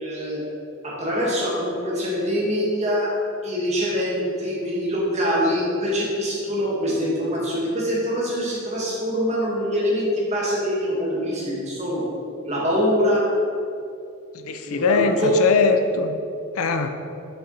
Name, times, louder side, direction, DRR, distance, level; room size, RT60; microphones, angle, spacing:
voice 1, 0.0-0.4 0.8-3.1 3.4-12.0 12.4-13.2 14.6-15.4, equal, 30° right, -5 dB, 1.8 m, -24 dB
voice 2, 14.3-16.2 16.6-16.9, left 4 dB, 80° left, 7 dB, 0.5 m, -21 dB
7.6 x 5.0 x 4.0 m, 2.5 s
head